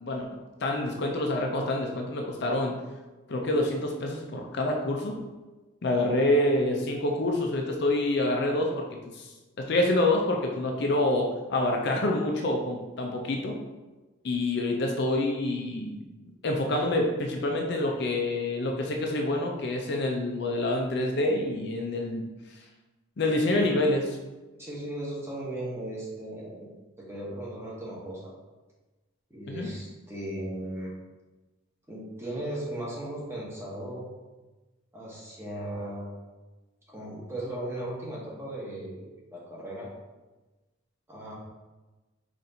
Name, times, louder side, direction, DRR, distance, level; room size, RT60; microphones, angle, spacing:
voice 1, 0.6-2.7 3.3-5.2 5.8-8.9 9.1-9.3 9.6-13.5 14.2-16.1 16.4-22.3 23.2-24.1 29.5-29.7, left 1 dB, 50° left, 1 dB, 0.4 m, -27 dB
voice 2, 24.6-26.7 27.0-28.3 29.3-30.9 31.9-34.0 34.9-36.1 36.9-39.9 41.1-41.3, right 1 dB, 10° right, -6 dB, 0.9 m, -37 dB
4.2 x 2.5 x 3.8 m, 1.2 s
head